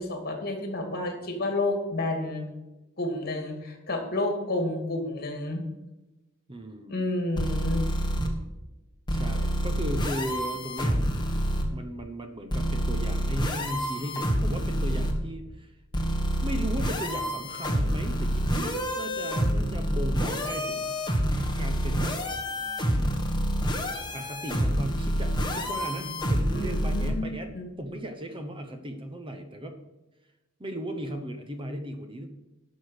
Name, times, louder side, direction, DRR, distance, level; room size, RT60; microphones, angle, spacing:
voice 1, 0.0-2.5 3.0-5.6 6.9-7.8 26.5-27.3 27.5-27.7, left 2 dB, 45° left, 4 dB, 2.5 m, -30 dB
voice 2, 6.5-7.1 9.1-11.1 11.7-15.8 16.4-21.0 21.5-22.2 24.1-27.5 27.8-29.8 30.6-32.3, right 1 dB, 25° right, 7 dB, 0.9 m, -36 dB
sound 1, 7.3-8.3 9.1-11.6 12.5-15.1 15.9-27.1, equal, 20° left, 1.5 m, -28 dB
11.5 x 6.3 x 6.4 m, 1.0 s
head